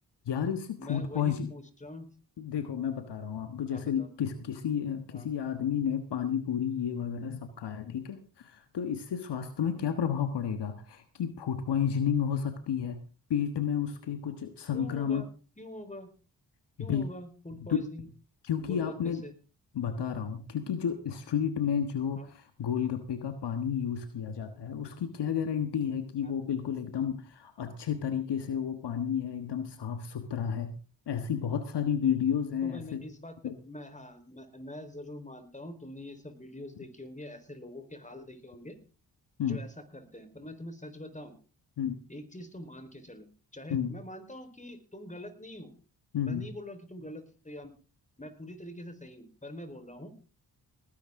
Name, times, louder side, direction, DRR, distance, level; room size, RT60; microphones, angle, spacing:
voice 1, 0.2-1.5 2.4-13.0 13.3-15.2 16.9-17.1 17.6-17.8 18.4-19.2 19.7-22.2 22.6-30.7 31.1-33.0 33.4-33.6 39.4-39.6 41.8-42.0 43.7-43.9 46.1-46.5, left 8 dB, 70° left, 9 dB, 1.4 m, -31 dB
voice 2, 0.8-2.1 3.7-4.1 5.1-5.3 9.6-9.9 14.7-15.3 15.6-16.1 16.8-18.1 18.6-19.3 22.2-22.3 26.2-26.3 32.6-33.3 33.6-38.8 39.4-41.3 42.1-43.3 43.5-45.7 46.2-47.7 48.2-50.1, left 1 dB, 15° left, 8 dB, 4.2 m, -44 dB
19.0 x 11.5 x 3.7 m, 0.35 s
supercardioid pair, 40°, 43 cm